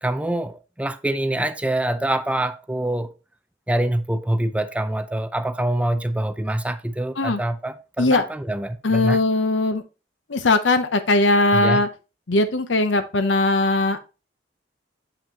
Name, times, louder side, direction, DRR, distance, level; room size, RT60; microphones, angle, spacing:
voice 1, 0.0-3.1 3.7-9.2 11.5-11.8, right 1 dB, 5° right, 0.4 m, -25 dB
voice 2, 8.8-9.8 10.3-11.9 12.3-14.1, left 2 dB, 80° left, 0.8 m, -19 dB
7.2 x 5.9 x 2.9 m
head